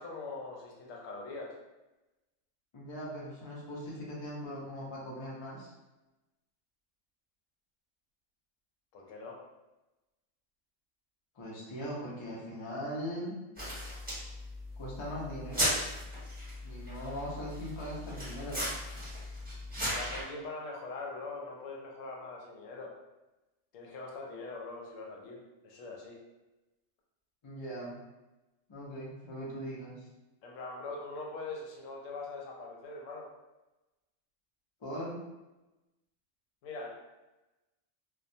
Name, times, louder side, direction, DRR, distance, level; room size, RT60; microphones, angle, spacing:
voice 1, 0.0-1.6 8.9-9.4 19.9-23.0 23.7-26.2 30.4-33.3 36.6-36.9, left 3 dB, 85° left, -1 dB, 0.9 m, -42 dB
voice 2, 2.7-5.7 11.4-13.4 14.8-15.7 16.6-18.6 19.2-19.4 27.4-28.0 28.7-29.9 34.8-35.2, equal, 35° left, -5 dB, 0.4 m, -40 dB
sound 1, 13.6-20.2, equal, 10° right, 0.9 m, -37 dB
2.3 x 2.2 x 2.6 m, 1.0 s
omnidirectional pair, 1.3 m